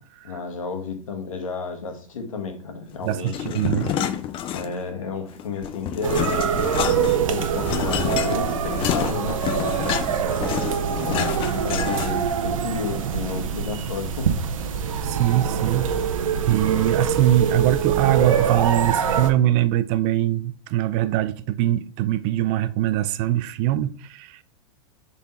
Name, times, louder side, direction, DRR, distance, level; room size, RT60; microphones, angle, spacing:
voice 1, 0.2-3.6 4.5-6.5 7.3-9.9 11.0-14.3, left 5 dB, 85° left, 1.5 m, -32 dB
voice 2, 3.0-4.2 15.0-15.9 16.4-24.4, right 13 dB, 45° right, 0.5 m, -22 dB
sound 1, 3.3-5.0 5.3-12.3, left 10 dB, 30° left, 0.6 m, -28 dB
sound 2, 6.0-19.3, right 7 dB, 85° right, 0.8 m, -24 dB
5.8 x 4.1 x 4.2 m
hypercardioid pair, 120°, 17 cm